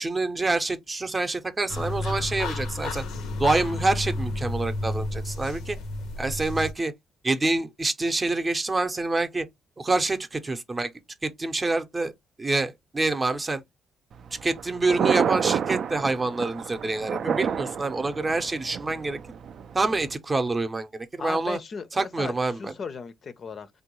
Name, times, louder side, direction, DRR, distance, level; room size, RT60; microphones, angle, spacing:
voice 1, 0.0-3.0 3.4-5.8 6.2-6.9 7.2-9.5 9.8-10.9 11.2-12.1 12.4-13.6 14.4-19.2 19.7-21.6 21.9-22.7, right 3 dB, 25° right, 0.6 m, -26 dB
sound 1, 1.7-6.7, left 2 dB, 90° left, 0.6 m, -31 dB
Thunder, 14.1-20.1, right 7 dB, 60° right, 0.3 m, -29 dB
voice 2, 21.2-23.7, left 5 dB, 50° left, 0.5 m, -36 dB
3.4 x 2.2 x 3.0 m
cardioid pair, 90°, 0 cm